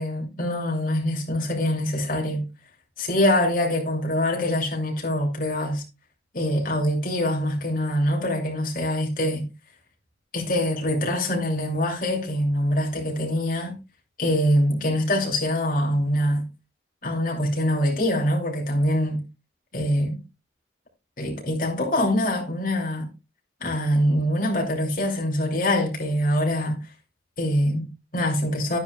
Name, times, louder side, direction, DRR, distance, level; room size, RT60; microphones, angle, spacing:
voice 1, 0.0-2.5 3.0-5.8 6.3-9.5 10.3-13.8 14.2-16.4 17.0-19.2 19.7-20.2 21.2-23.1 23.6-26.8 27.4-28.8, left 1 dB, 45° left, 2.8 m, -24 dB
11.0 x 9.7 x 2.3 m
head